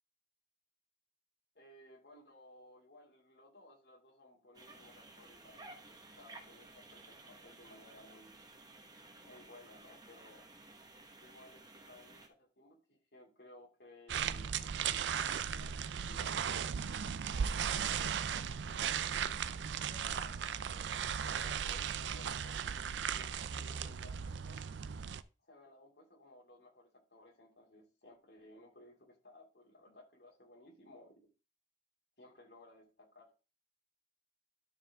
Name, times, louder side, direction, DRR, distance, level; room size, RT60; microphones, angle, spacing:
voice 1, 1.5-8.4 9.2-10.4 11.2-16.8 17.4-20.5 21.2-22.9 23.1-24.6 25.4-31.3 32.2-33.3, left 1 dB, 65° left, 0 dB, 2.5 m, -59 dB
sound 1, 4.5-12.3, right 2 dB, 20° right, 1.2 m, -56 dB
sound 2, 14.1-25.2, right 7 dB, 80° right, 0.4 m, -37 dB
12.5 x 4.7 x 3.5 m, 0.33 s
head